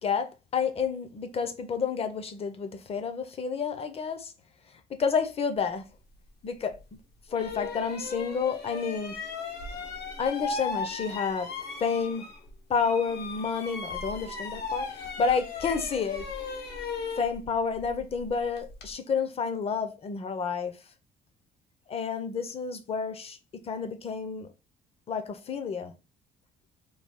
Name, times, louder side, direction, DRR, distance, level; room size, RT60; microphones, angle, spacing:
voice 1, 0.0-4.3 4.9-5.9 6.4-6.8 7.3-9.2 10.2-11.5 11.8-12.3 12.7-16.3 17.1-20.8 21.9-24.5 25.1-25.9, left 6 dB, 35° left, 0.6 m, -30 dB
sound 1, 6.7-6.8 7.3-12.5 12.8-18.9, left 4 dB, 70° left, 0.9 m, -37 dB
3.3 x 2.2 x 3.7 m
cardioid pair, 110°, 17 cm